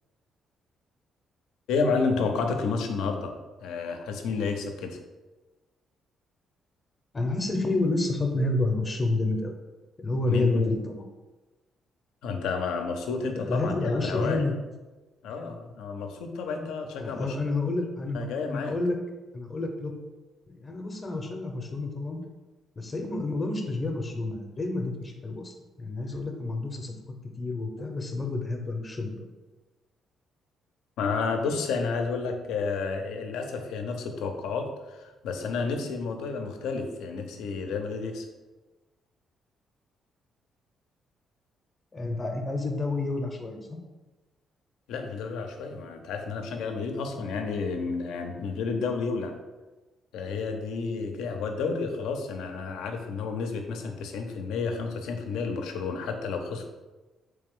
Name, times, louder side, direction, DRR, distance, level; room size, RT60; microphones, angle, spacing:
voice 1, 1.7-5.0 10.3-10.7 12.2-14.4 15.2-17.4 18.1-18.7 27.8-27.9 31.0-38.3 44.9-49.4 50.1-56.7, left 4 dB, 90° left, 5 dB, 0.5 m, -31 dB
voice 2, 7.1-9.5 10.0-11.0 13.3-14.5 17.0-19.0 19.3-19.9 20.5-22.2 22.8-26.9 27.4-29.3 41.9-43.8, left 2 dB, 30° left, 3 dB, 0.6 m, -29 dB
3.3 x 3.3 x 3.6 m, 1.2 s
cardioid pair, 90°, 0 cm